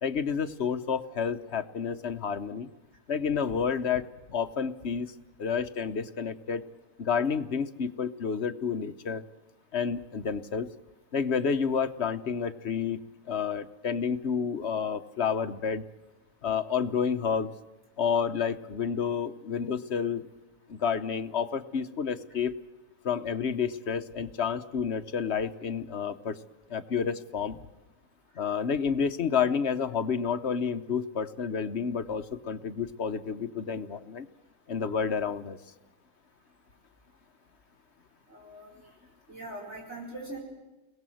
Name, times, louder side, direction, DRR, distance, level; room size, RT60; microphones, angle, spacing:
voice 1, 0.0-2.7 3.1-5.1 5.4-6.7 7.0-9.2 9.7-10.7 11.1-13.0 13.3-15.8 16.4-17.5 18.0-20.2 20.7-22.5 23.0-26.4 26.7-27.6 28.4-34.3 34.7-35.6, left 6 dB, 50° left, 9 dB, 1.2 m, -30 dB
voice 2, 38.3-38.7 39.3-40.4, right 2 dB, 45° right, -3 dB, 5.6 m, -41 dB
29.5 x 21.0 x 7.8 m, 1.1 s
omnidirectional pair, 1.6 m